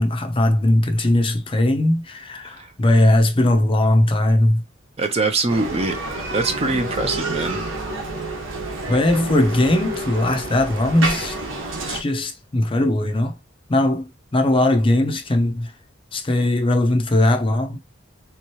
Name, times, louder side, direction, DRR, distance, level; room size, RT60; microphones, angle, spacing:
voice 1, 0.0-4.6 8.9-11.4 11.9-13.3 13.7-15.7 16.1-17.8, left 1 dB, 25° left, 0.6 m, -19 dB
voice 2, 5.0-6.0 6.3-7.6, right 3 dB, 30° right, 0.6 m, -23 dB
Bicycle, 5.5-12.0, right 2 dB, 80° right, 1.2 m, -29 dB
3.6 x 3.1 x 3.0 m
head